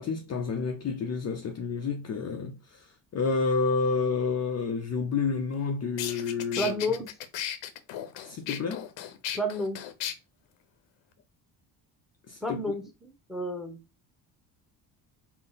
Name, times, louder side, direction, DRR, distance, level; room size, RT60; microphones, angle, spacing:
voice 1, 0.0-6.7 8.2-8.9 12.3-12.7, left 4 dB, 35° left, 0.5 m, -29 dB
sound 1, 5.5-5.6 6.0-10.1, left 10 dB, 65° left, 0.7 m, -36 dB
voice 2, 6.6-7.1 9.3-9.8 12.4-13.8, equal, ahead, 1.1 m, -31 dB
3.8 x 2.0 x 3.9 m
supercardioid pair, 75°, 49 cm